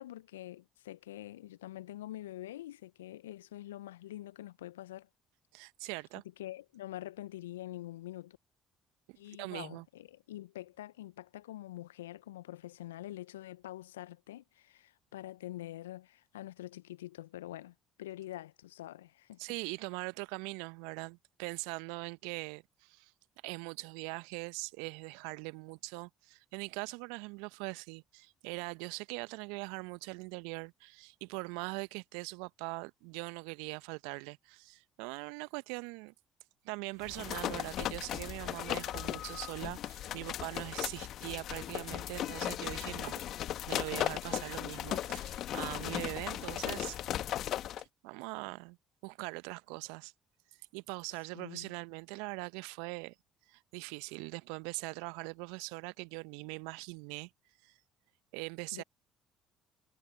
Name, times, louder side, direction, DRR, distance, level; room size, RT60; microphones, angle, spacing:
voice 1, 0.0-5.1 6.4-8.4 9.2-19.4 51.3-51.7 58.7-58.8, left 14 dB, 80° left, 1.0 m, -45 dB
voice 2, 5.5-6.2 9.1-9.8 19.4-23.1 23.4-36.1 36.6-43.2 43.7-47.0 47.8-48.8 49.0-50.1 50.7-53.1 53.5-57.3 57.6-57.7 58.3-58.8, right 30 dB, 70° right, 1.1 m, -42 dB
sound 1, 37.0-47.8, left 12 dB, 55° left, 1.5 m, -37 dB
figure-of-eight pair, 50°, 0 cm